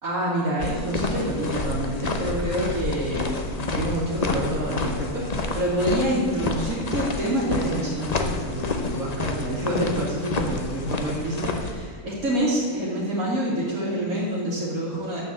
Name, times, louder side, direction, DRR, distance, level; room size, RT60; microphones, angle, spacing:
voice 1, 0.0-15.2, right 1 dB, 60° right, -8 dB, 2.7 m, -27 dB
sound 1, 0.6-11.7, left 3 dB, 35° left, 0.7 m, -29 dB
9.4 x 6.7 x 7.4 m, 2.2 s
omnidirectional pair, 1.6 m